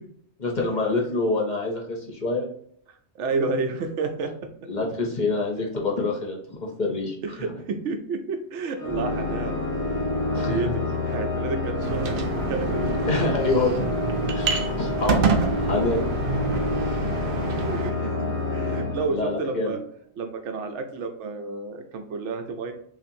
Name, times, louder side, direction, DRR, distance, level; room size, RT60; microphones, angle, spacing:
voice 1, 0.4-2.5 4.7-7.5 10.3-10.7 12.2-12.3 12.8-15.2 15.7-16.0 19.1-19.8, left 3 dB, 45° left, 0 dB, 0.8 m, -27 dB
voice 2, 3.1-4.3 7.2-9.5 10.5-10.7 11.0-12.8 16.9-19.8 20.2-22.7, right 4 dB, 80° right, 6 dB, 1.0 m, -30 dB
Organ, 8.8-19.7, left 2 dB, 15° left, 1.1 m, -28 dB
sound 1, 11.8-17.9, right 5 dB, 60° right, 0.6 m, -28 dB
5.6 x 2.5 x 2.6 m, 0.63 s
omnidirectional pair, 1.2 m